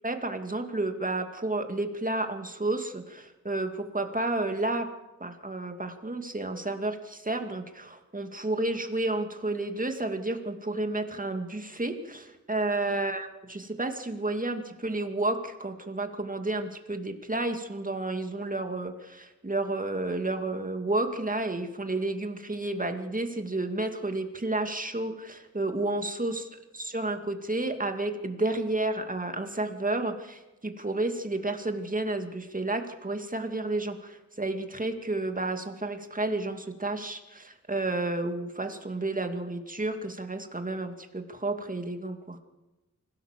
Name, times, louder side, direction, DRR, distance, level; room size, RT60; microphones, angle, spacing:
voice 1, 0.0-4.9 5.2-26.4 26.8-42.4, right 2 dB, 25° right, 6 dB, 2.3 m, -31 dB
25.0 x 17.0 x 7.5 m, 1.1 s
wide cardioid pair, 75°, 30 cm